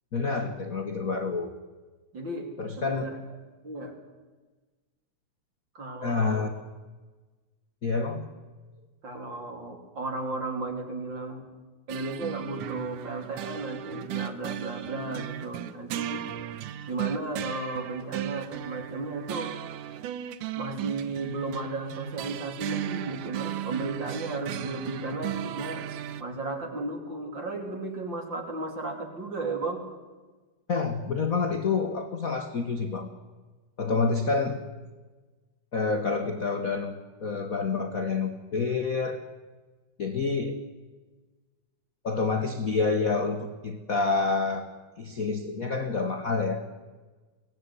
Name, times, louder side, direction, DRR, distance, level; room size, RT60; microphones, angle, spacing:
voice 1, 0.1-1.5 2.6-3.0 6.0-6.5 7.8-8.3 30.7-33.1 33.8-34.6 35.7-39.2 40.0-40.6 42.0-44.7 45.0-46.7, left 4 dB, 40° left, 6 dB, 1.3 m, -28 dB
voice 2, 2.1-2.5 2.8-3.2 3.6-3.9 5.7-6.4 9.0-11.5 11.9-16.2 16.9-19.6 20.6-25.9 26.2-29.8, right 2 dB, 35° right, 3 dB, 4.0 m, -34 dB
sound 1, 11.9-26.2, right 11 dB, 90° right, 2.5 m, -36 dB
23.5 x 17.5 x 9.8 m, 1.3 s
omnidirectional pair, 3.5 m